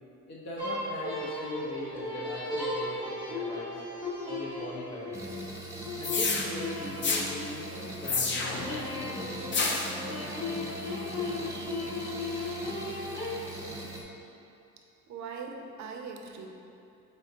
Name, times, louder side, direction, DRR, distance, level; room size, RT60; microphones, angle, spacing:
voice 1, 0.3-3.8 4.2-5.3 6.0-9.5, left 1 dB, 60° left, -5 dB, 1.0 m, -40 dB
sound 1, 0.6-8.0 8.6-13.3, left 2 dB, 15° left, 1.3 m, -36 dB
sound 2, 5.1-14.0, right 1 dB, 10° right, 0.7 m, -40 dB
sound 3, 6.0-6.4 7.0-7.2 8.0-8.7 9.5-9.9, left 4 dB, 40° left, 0.5 m, -28 dB
voice 2, 15.1-16.5, right 5 dB, 70° right, 3 dB, 0.6 m, -40 dB
5.1 x 3.5 x 2.8 m, 2.7 s
cardioid pair, 90°, 30 cm